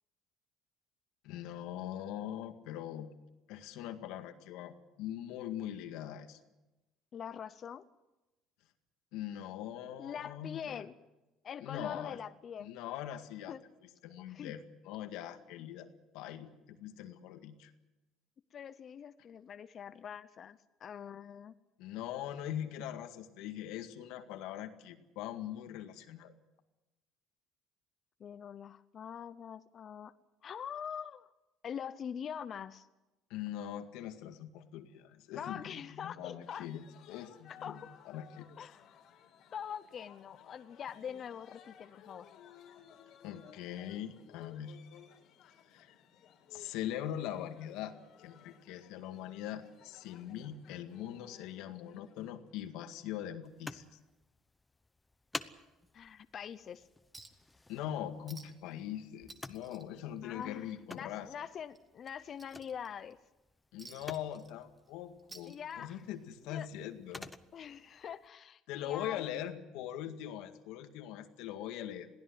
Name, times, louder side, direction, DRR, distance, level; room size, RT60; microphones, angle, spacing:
voice 1, 1.2-3.1 3.5-6.4 9.1-10.8 11.6-12.2 12.6-13.6 14.0-15.9 16.1-17.7 21.8-26.4 33.3-38.7 43.2-44.8 45.7-45.9 46.5-54.0 57.7-61.3 63.7-67.3 68.7-72.1, left 11 dB, 85° left, 7 dB, 2.0 m, -42 dB
voice 2, 7.1-7.8 10.0-10.9 11.4-12.7 13.5-13.6 14.3-14.5 18.5-21.5 28.2-30.1 30.4-31.3 31.6-32.9 35.4-36.7 37.6-37.9 38.6-39.0 39.5-42.3 55.9-56.9 60.2-63.2 65.5-66.0 66.5-66.7 67.5-69.5, left 8 dB, 40° left, 12 dB, 0.7 m, -44 dB
sound 1, 36.4-52.7, left 9 dB, 60° left, 3.0 m, -59 dB
sound 2, 53.4-68.3, left 2 dB, 10° left, 0.9 m, -52 dB
Chink clink, 57.1-57.5 57.8-57.9 58.3-58.7 59.0-60.7 61.1-61.2 61.7-63.1 63.8-64.9 65.2-66.1 67.2-67.3, right 3 dB, 15° right, 1.7 m, -55 dB
21.5 x 16.0 x 9.4 m, 1.0 s
cardioid pair, 145°, 0 cm